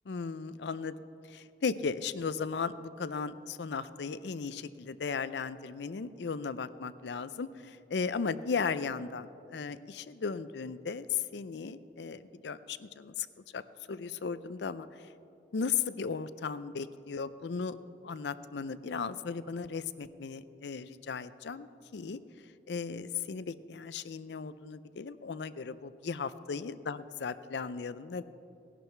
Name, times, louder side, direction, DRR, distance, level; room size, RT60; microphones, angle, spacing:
voice 1, 0.1-1.0 1.3-13.3 13.5-13.6 13.9-15.1 15.5-17.8 18.0-22.2 22.7-28.2, left 5 dB, 70° left, 14 dB, 0.5 m, -36 dB
18.0 x 11.0 x 4.5 m, 2.6 s
head